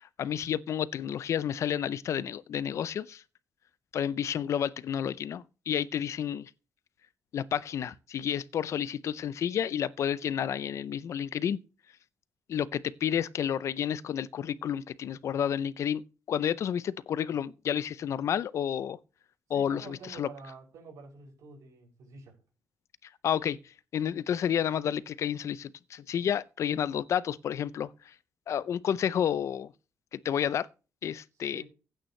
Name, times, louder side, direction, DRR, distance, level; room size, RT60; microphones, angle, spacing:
voice 1, 0.0-3.2 3.9-6.5 7.3-11.6 12.5-19.0 19.5-20.3 23.2-23.6 23.9-28.1 28.5-29.7 30.1-30.7 31.0-31.6, left 9 dB, 60° left, 0.5 m, -30 dB
voice 2, 19.5-22.4 31.4-31.6, right 4 dB, 80° right, 6.8 m, -48 dB
15.0 x 9.0 x 3.2 m
cardioid pair, 110°, 6 cm